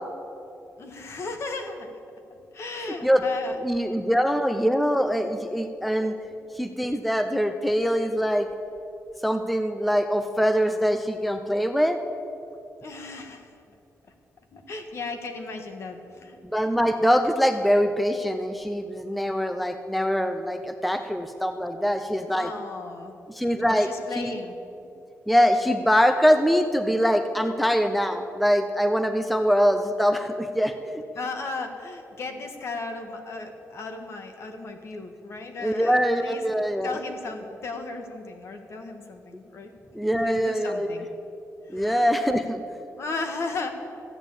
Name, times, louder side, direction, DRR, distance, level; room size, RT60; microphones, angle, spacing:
voice 1, 0.8-1.9 2.5-3.6 6.3-6.4 12.8-13.5 14.5-16.4 22.4-23.1 23.7-24.6 31.1-36.4 36.8-39.7 40.2-41.1 41.7-42.0 43.0-43.7, left 3 dB, 50° left, 5 dB, 1.5 m, -35 dB
voice 2, 3.6-6.2 6.5-8.5 9.2-12.0 16.4-22.5 23.3-23.9 24.2-24.3 25.3-31.0 35.6-37.0 39.9-41.0 41.7-42.6, equal, ahead, 8 dB, 0.5 m, -23 dB
14.0 x 9.0 x 8.3 m, 2.7 s
wide cardioid pair, 170°, 6 cm